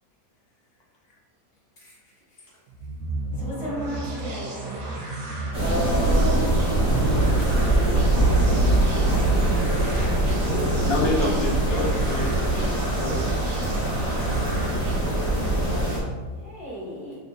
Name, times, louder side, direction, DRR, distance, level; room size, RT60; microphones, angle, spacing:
sound 1, 2.7-16.4, right 2 dB, 70° right, 1.1 m, -33 dB
voice 1, 3.4-4.5 10.4-11.0 16.4-17.2, equal, 75° left, -7 dB, 1.9 m, -34 dB
sound 2, 5.5-16.0, right 1 dB, 20° left, 1.3 m, -23 dB
voice 2, 5.5-8.9 14.6-15.3, right 1 dB, 85° right, -2 dB, 1.4 m, -33 dB
voice 3, 10.8-13.5, left 1 dB, 55° left, -2 dB, 0.9 m, -28 dB
5.7 x 2.7 x 2.5 m, 1.4 s
omnidirectional pair, 1.5 m